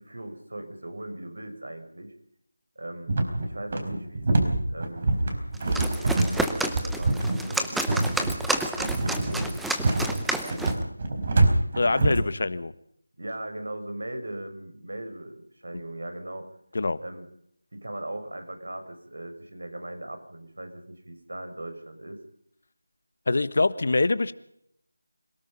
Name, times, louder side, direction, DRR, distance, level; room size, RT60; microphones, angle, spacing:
voice 1, 0.0-2.1 2.7-3.1 3.4-5.1 6.0-9.6 9.9-10.9 13.2-16.5 17.0-17.3 17.7-22.2, right 1 dB, 75° right, 7 dB, 6.5 m, -39 dB
sound 1, 3.1-12.3, right 2 dB, 35° right, 4.5 m, -25 dB
sound 2, 5.5-10.8, right 1 dB, ahead, 0.9 m, -30 dB
voice 2, 11.7-12.7 16.7-17.0 23.3-24.3, left 3 dB, 50° left, 15 dB, 1.4 m, -24 dB
26.5 x 18.0 x 5.5 m, 0.71 s
figure-of-eight pair, 170°, 0 cm